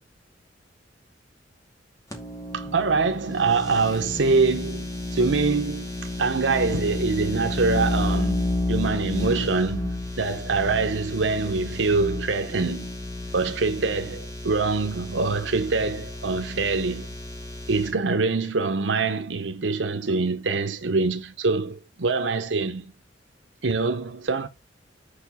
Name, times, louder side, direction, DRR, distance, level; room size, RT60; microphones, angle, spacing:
sound 1, 2.1-17.9, left 2 dB, 20° left, 2.5 m, -31 dB
voice 1, 2.5-5.8 6.2-9.9 10.2-12.9 13.3-17.1 17.7-22.9 23.6-24.5, right 4 dB, 85° right, 0.8 m, -24 dB
6.9 x 4.9 x 6.9 m
head